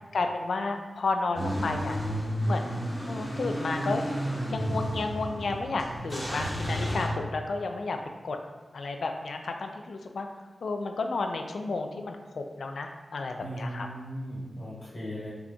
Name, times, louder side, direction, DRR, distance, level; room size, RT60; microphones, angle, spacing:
voice 1, 0.1-2.0 2.5-2.8 3.1-4.0 4.5-8.0 8.2-8.4 8.7-10.3 10.6-13.9, left 3 dB, 90° left, 5 dB, 0.3 m, -32 dB
Car / Engine starting / Idling, 1.3-7.1, equal, 10° left, 1.0 m, -31 dB
voice 2, 13.4-15.3, equal, 50° left, -8 dB, 1.4 m, -37 dB
3.8 x 3.5 x 2.3 m, 1.3 s
wide cardioid pair, 105°, 0 cm